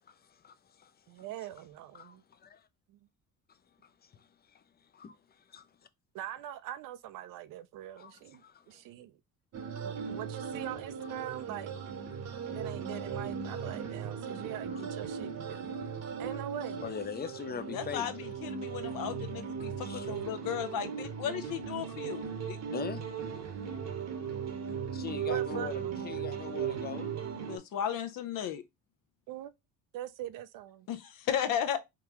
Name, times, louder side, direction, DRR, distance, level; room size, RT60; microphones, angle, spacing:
voice 1, 0.0-1.2 1.9-2.7 3.8-5.2 8.0-8.8 11.0-11.1 14.7-14.9 15.5-15.6 16.2-16.4 16.8-18.1 18.7-18.8 19.6-20.1 22.7-23.0 24.9-27.1, left 7 dB, 30° left, 0.4 m, -43 dB
voice 2, 1.1-2.2 2.9-3.0 6.1-9.2 9.8-11.8 12.3-15.8 16.2-16.8 24.4-24.6 25.3-26.0 29.3-29.5 29.9-30.9, right 12 dB, 65° right, 0.5 m, -42 dB
sound 1, 9.5-27.6, right 7 dB, 50° right, 0.9 m, -38 dB
voice 3, 17.7-22.6 27.4-28.6 30.9-31.8, left 9 dB, 65° left, 0.7 m, -35 dB
3.7 x 2.3 x 2.9 m
supercardioid pair, 80°, 35 cm